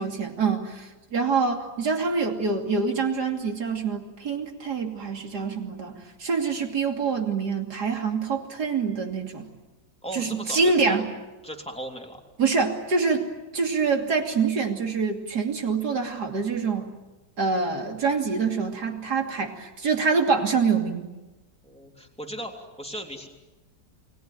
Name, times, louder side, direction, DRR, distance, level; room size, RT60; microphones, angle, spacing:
voice 1, 0.0-9.5 10.1-11.1 12.4-13.3 13.5-16.9 17.4-21.1, right 5 dB, 65° right, 3 dB, 3.4 m, -25 dB
voice 2, 10.0-11.0 11.4-12.2 21.6-23.3, right 1 dB, 5° left, 2 dB, 3.2 m, -37 dB
30.0 x 20.5 x 9.1 m, 1.1 s
omnidirectional pair, 1.9 m